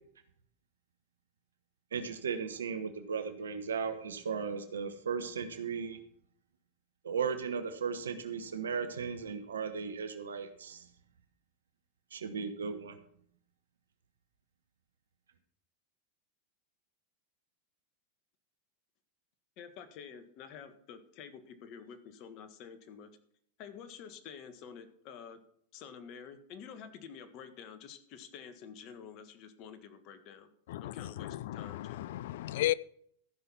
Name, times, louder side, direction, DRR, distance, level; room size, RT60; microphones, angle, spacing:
voice 1, 1.9-6.0 7.0-10.9 12.1-13.0, right 6 dB, 85° right, 1.1 m, -36 dB
voice 2, 19.6-23.1 23.6-25.4 25.7-30.5 30.8-32.0, left 7 dB, 50° left, 1.6 m, -49 dB
voice 3, 30.7-32.7, left 15 dB, 70° left, 0.4 m, -34 dB
14.5 x 5.9 x 5.9 m
hypercardioid pair, 100°, 0 cm